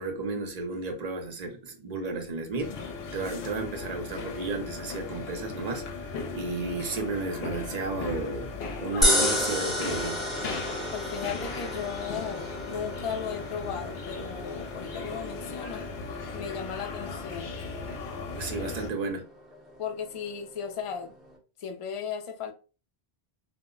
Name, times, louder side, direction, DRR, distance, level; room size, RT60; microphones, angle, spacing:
voice 1, 0.0-2.7 3.1-10.2 18.3-19.2, right 3 dB, 50° right, 0.6 m, -33 dB
sound 1, 2.6-18.9, left 4 dB, 75° left, 0.8 m, -37 dB
sound 2, 9.0-21.4, equal, ahead, 0.5 m, -33 dB
voice 2, 10.9-17.6 18.6-18.7 19.8-21.2 21.6-22.5, left 7 dB, 50° left, 0.4 m, -36 dB
2.1 x 2.0 x 3.6 m
omnidirectional pair, 1.1 m